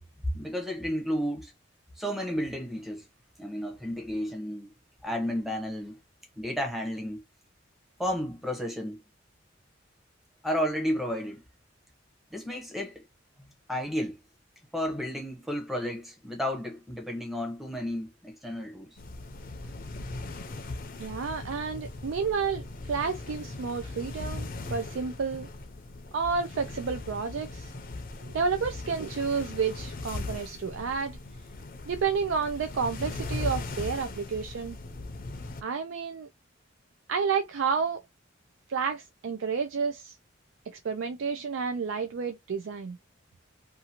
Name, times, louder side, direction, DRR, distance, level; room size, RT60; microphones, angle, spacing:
voice 1, 0.2-1.5 2.0-3.1 3.4-4.7 5.0-6.0 6.4-7.2 8.0-9.0 10.4-11.4 12.3-13.0 13.7-14.2 14.7-18.9, equal, ahead, 0.8 m, -32 dB
sound 1, 19.0-35.6, left 2 dB, 50° left, 0.5 m, -39 dB
voice 2, 21.0-25.5 26.1-27.7 28.2-31.2 31.9-34.8 35.6-36.3 37.1-38.0 38.7-40.1 40.8-43.0, right 5 dB, 85° right, 0.4 m, -30 dB
2.7 x 2.5 x 2.8 m
head